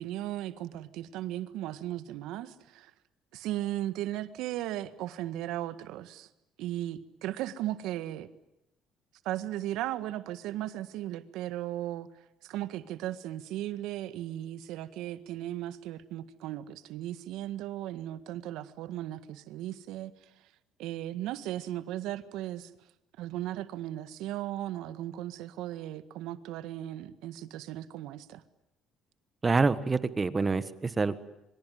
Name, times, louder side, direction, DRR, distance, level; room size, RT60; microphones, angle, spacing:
voice 1, 0.0-2.9 3.3-6.3 6.6-8.3 9.2-12.1 12.4-20.1 20.8-22.7 23.2-28.4, right 13 dB, 75° right, 12 dB, 1.7 m, -36 dB
voice 2, 29.4-31.2, right 4 dB, 20° right, 13 dB, 1.5 m, -26 dB
26.5 x 24.0 x 9.4 m, 0.87 s
cardioid pair, 120°, 0 cm